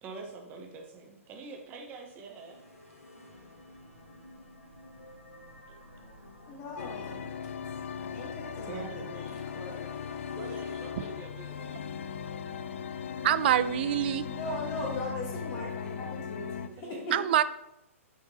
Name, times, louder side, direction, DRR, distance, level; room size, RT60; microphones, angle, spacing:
voice 1, 0.0-2.6 5.5-6.1 6.8-7.2 8.7-9.5 10.3-11.9 16.8-17.0, right 4 dB, 25° right, 2 dB, 1.2 m, -45 dB
sound 1, 1.9-12.1, left 1 dB, 80° left, 1.5 m, -52 dB
voice 2, 6.5-7.5 8.1-9.0 9.5-10.3 14.2-17.2, left 2 dB, 30° left, -1 dB, 1.4 m, -39 dB
sound 2, 6.8-16.7, left 7 dB, 55° left, 0.5 m, -38 dB
voice 3, 13.2-14.2 17.1-17.4, right 11 dB, 45° right, 15 dB, 0.4 m, -25 dB
9.1 x 4.3 x 2.9 m, 0.86 s
figure-of-eight pair, 120°, 8 cm